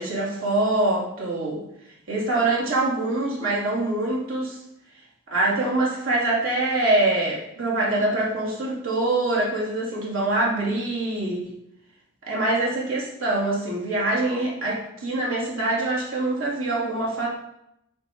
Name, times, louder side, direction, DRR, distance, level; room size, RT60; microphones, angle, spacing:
voice 1, 0.0-1.6 2.1-4.6 5.3-11.4 12.3-17.3, right 2 dB, 75° right, -5 dB, 3.3 m, -24 dB
9.2 x 6.3 x 4.7 m, 0.80 s
head